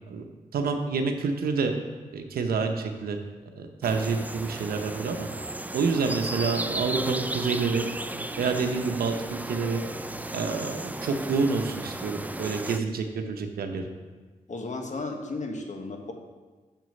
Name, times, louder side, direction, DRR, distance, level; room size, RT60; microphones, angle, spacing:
voice 1, 0.5-1.7 2.1-3.2 3.5-5.3 5.7-7.9 8.4-9.8 10.3-13.8, right 4 dB, 80° right, 5 dB, 0.8 m, -28 dB
sound 1, 3.8-12.8, right 1 dB, 10° right, 0.5 m, -35 dB
voice 2, 14.5-16.1, left 3 dB, 50° left, 3 dB, 1.3 m, -34 dB
6.8 x 6.2 x 5.2 m, 1.3 s
supercardioid pair, 45°, 15 cm